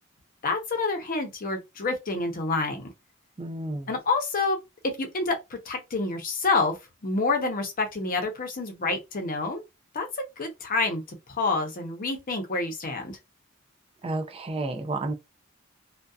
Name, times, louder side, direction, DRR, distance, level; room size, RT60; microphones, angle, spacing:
voice 1, 0.4-2.9 3.9-4.6 5.0-5.4 5.7-6.7 7.0-9.6 9.9-10.1 10.4-11.0 11.4-13.2, left 3 dB, 45° left, 0.7 m, -27 dB
voice 2, 3.4-3.9 14.0-15.1, right 2 dB, 25° right, 0.4 m, -31 dB
2.7 x 2.2 x 2.3 m
head